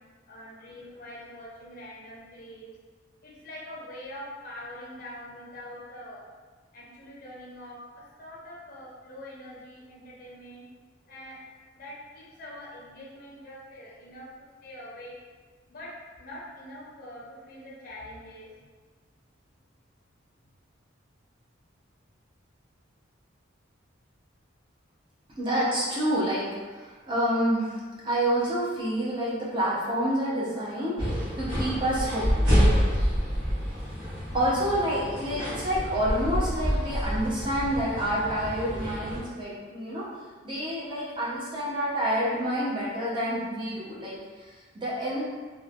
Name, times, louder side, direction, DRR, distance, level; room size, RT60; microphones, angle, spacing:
voice 1, 0.3-2.7 3.2-6.3 6.7-10.7 11.1-15.2 15.7-15.9 16.2-18.5, left 1 dB, 45° left, -6 dB, 0.5 m, -44 dB
voice 2, 25.4-32.2 34.0-40.0 40.4-45.2, equal, 25° right, -7 dB, 0.6 m, -28 dB
sound 1, 31.0-39.2, equal, 65° right, 1.0 m, -27 dB
3.0 x 2.1 x 2.4 m, 1.4 s
head